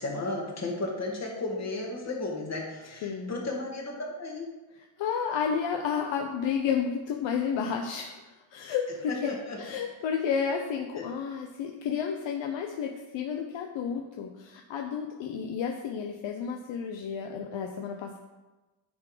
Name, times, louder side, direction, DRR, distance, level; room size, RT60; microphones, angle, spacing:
voice 1, 0.0-4.5 9.3-9.6 11.0-11.1, left 2 dB, 30° left, -1 dB, 2.0 m, -34 dB
voice 2, 3.0-3.3 5.0-9.3 9.6-18.2, left 7 dB, 65° left, 3 dB, 0.8 m, -31 dB
9.6 x 3.8 x 4.9 m, 1.1 s
cardioid pair, 100°, 50 cm